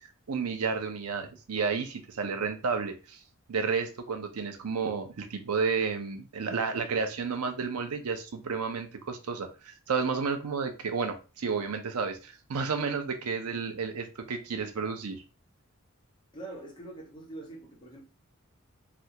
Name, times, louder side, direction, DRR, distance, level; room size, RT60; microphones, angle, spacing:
voice 1, 0.3-3.2 3.5-15.2, right 5 dB, 90° right, 0.6 m, -31 dB
voice 2, 16.3-18.0, right 2 dB, 20° left, 1.0 m, -44 dB
3.3 x 2.4 x 2.8 m
head